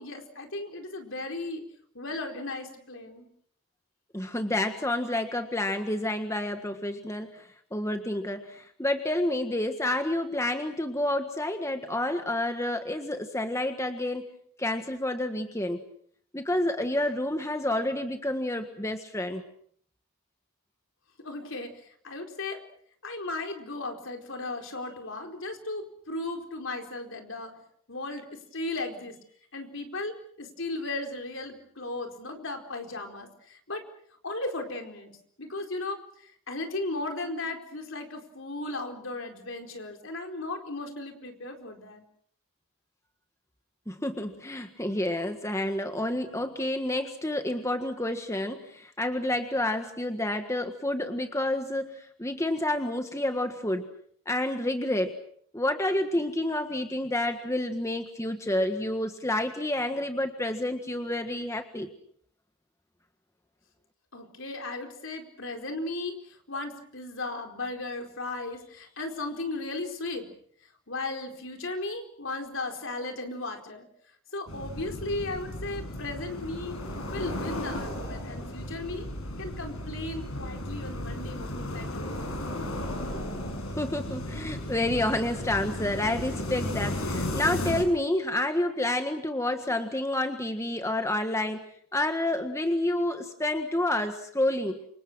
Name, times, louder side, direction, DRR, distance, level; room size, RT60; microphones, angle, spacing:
voice 1, 0.0-1.6 1.9-3.3 21.2-22.6 23.0-27.5 27.9-28.2 28.5-29.1 29.5-33.8 34.2-42.0 64.1-70.3 70.9-73.9 74.3-76.8 77.1-79.1 79.4-82.3, left 2 dB, 60° left, 4 dB, 4.6 m, -36 dB
voice 2, 4.1-14.3 14.6-15.8 16.3-19.4 43.9-53.9 54.2-55.1 55.5-61.9 83.8-91.6 91.9-94.8, left 1 dB, 15° left, 6 dB, 1.5 m, -29 dB
sound 1, 74.5-87.8, left 1 dB, 80° left, 6.9 m, -34 dB
28.5 x 26.0 x 6.2 m, 0.63 s
head